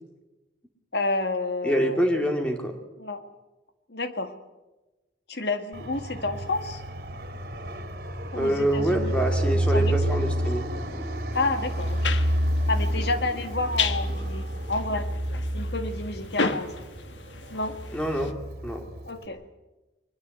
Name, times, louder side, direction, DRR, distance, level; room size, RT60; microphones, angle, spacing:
voice 1, 0.9-2.0 3.0-3.3 3.9-4.4 5.3-6.8 8.3-9.1 9.5-10.2 11.3-12.2 12.7-15.1 15.5-16.7 17.5-17.8 19.0-19.4, left 2 dB, 65° left, 8 dB, 2.0 m, -30 dB
voice 2, 1.6-2.8 8.3-10.7 16.4-16.6 17.9-18.3 18.6-18.8, right 1 dB, 5° left, 3 dB, 2.7 m, -26 dB
Fixed-wing aircraft airplane, 5.7-19.2, right 1 dB, 55° right, 3.5 m, -29 dB
sound 1, 11.3-18.3, left 5 dB, 85° left, 1.3 m, -34 dB
22.5 x 21.0 x 8.0 m, 1.1 s
head